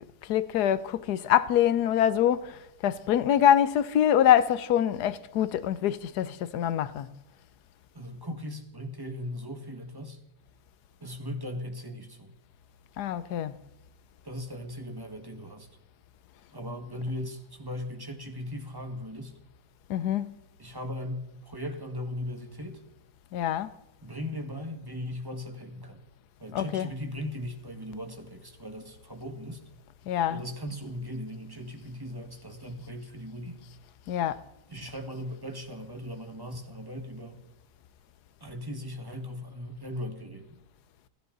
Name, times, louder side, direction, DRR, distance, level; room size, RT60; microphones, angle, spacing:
voice 1, 0.3-2.6 2.8-7.1 13.0-13.5 19.9-20.3 23.3-23.7 26.5-26.9 30.1-30.4 34.1-34.4, left 10 dB, 70° left, 1.3 m, -24 dB
voice 2, 7.9-10.2 11.0-12.3 14.2-15.7 16.5-19.3 20.6-22.8 24.0-26.0 26.4-29.6 30.3-33.6 34.7-37.4 38.4-40.5, left 1 dB, 15° right, 1.7 m, -38 dB
29.5 x 10.5 x 4.0 m
omnidirectional pair, 1.8 m